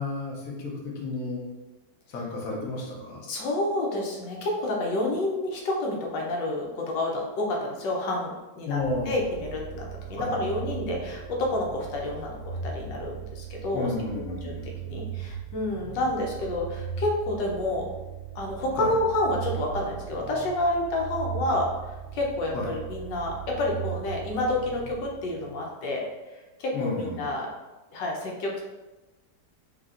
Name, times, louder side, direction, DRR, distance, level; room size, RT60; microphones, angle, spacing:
voice 1, 0.0-1.4 2.1-3.2 8.6-9.2 10.2-10.3 13.7-14.7 18.8-18.9 22.5-22.7 26.7-27.3, left 3 dB, 60° left, -2 dB, 1.1 m, -32 dB
voice 2, 3.2-8.8 9.1-13.9 14.4-17.8 18.3-27.5 27.9-28.6, left 1 dB, 85° left, -1 dB, 1.4 m, -29 dB
sound 1, 8.8-25.6, right 8 dB, 70° right, 1.0 m, -38 dB
4.9 x 2.7 x 2.4 m, 1.1 s
omnidirectional pair, 1.9 m